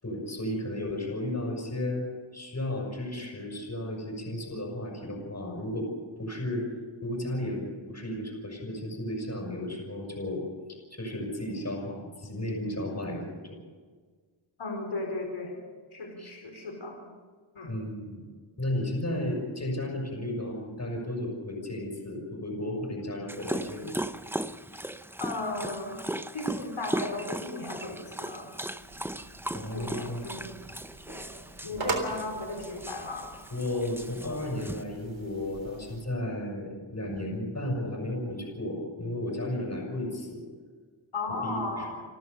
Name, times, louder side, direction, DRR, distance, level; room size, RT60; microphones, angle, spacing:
voice 1, 0.0-2.0 2.3-5.9 6.2-6.7 7.0-10.4 10.9-13.5 16.2-16.3 17.7-18.2 18.6-24.0 29.5-30.5 31.7-32.0 33.5-40.4 41.3-41.9, left 1 dB, 35° left, 0 dB, 6.5 m, -34 dB
voice 2, 14.6-15.6 15.9-17.0 17.5-17.8 25.2-26.1 26.3-28.5 29.7-30.5 31.1-31.3 31.6-33.3 41.1-42.0, left 2 dB, 75° left, 1 dB, 4.7 m, -35 dB
Dog, 23.3-34.8, right 1 dB, 5° right, 0.7 m, -37 dB
sound 1, 28.8-36.0, right 2 dB, 70° right, 3.7 m, -41 dB
29.5 x 13.0 x 6.9 m, 1.5 s
wide cardioid pair, 60°, 47 cm